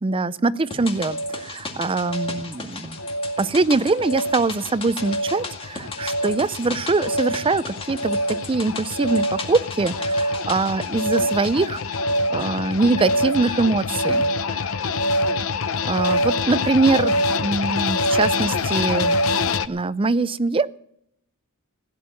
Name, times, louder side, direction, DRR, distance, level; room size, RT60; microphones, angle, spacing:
voice 1, 0.0-3.0 3.4-12.0 12.3-14.3 15.8-19.2 19.7-20.7, right 3 dB, 25° right, 15 dB, 0.4 m, -23 dB
sound 1, 0.7-19.7, left 2 dB, 65° left, 0.8 m, -25 dB
sound 2, 0.7-13.1 13.3-13.4, left 3 dB, 25° left, 2.1 m, -37 dB
16.0 x 9.4 x 7.1 m, 0.72 s
head